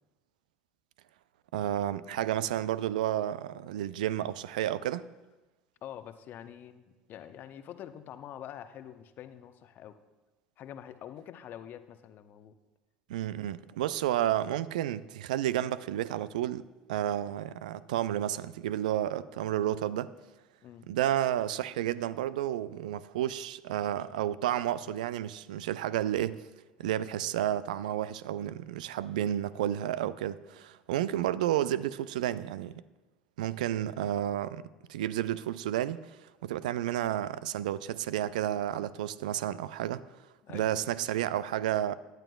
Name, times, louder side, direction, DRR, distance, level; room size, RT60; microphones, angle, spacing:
voice 1, 1.5-5.1 13.1-16.6 16.9-20.1 20.9-26.4 26.8-32.7 33.4-36.2 36.4-40.0 40.5-42.0, right 12 dB, 70° right, 0.3 m, -31 dB
voice 2, 5.8-10.0 10.6-12.5 20.6-20.9 40.4-40.7, left 10 dB, 45° left, 0.7 m, -46 dB
17.5 x 10.5 x 2.3 m
figure-of-eight pair, 65°, 4 cm